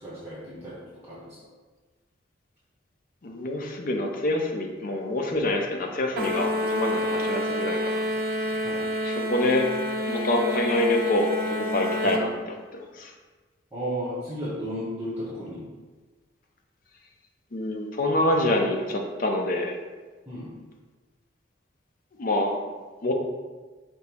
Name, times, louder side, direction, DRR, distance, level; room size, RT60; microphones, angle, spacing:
voice 1, 0.0-0.8 1.0-1.3 7.0-7.3 8.6-8.8 12.0-12.2 13.7-15.6 20.3-20.5, equal, 15° right, -8 dB, 0.8 m, -34 dB
voice 2, 3.2-8.0 8.5-8.7 9.0-9.7 10.1-13.1 17.5-19.8 22.2-22.5 23.0-23.1, left 1 dB, 45° left, 2 dB, 0.5 m, -26 dB
sound 1, 6.2-12.2, left 1 dB, 50° right, 0.6 m, -28 dB
5.2 x 2.0 x 4.4 m, 1.3 s
head